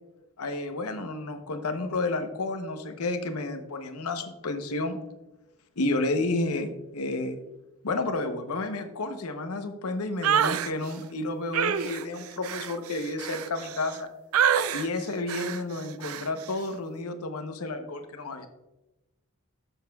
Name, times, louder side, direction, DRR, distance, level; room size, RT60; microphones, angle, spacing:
voice 1, 0.4-5.0 5.8-7.4 7.8-14.1 14.7-18.5, left 2 dB, 85° left, 7 dB, 0.9 m, -31 dB
sound 1, 10.2-10.7 11.5-14.0 14.3-14.9 15.3-15.6 16.0-16.3, right 8 dB, 70° right, 0.4 m, -26 dB
12.0 x 7.2 x 2.3 m, 0.99 s
head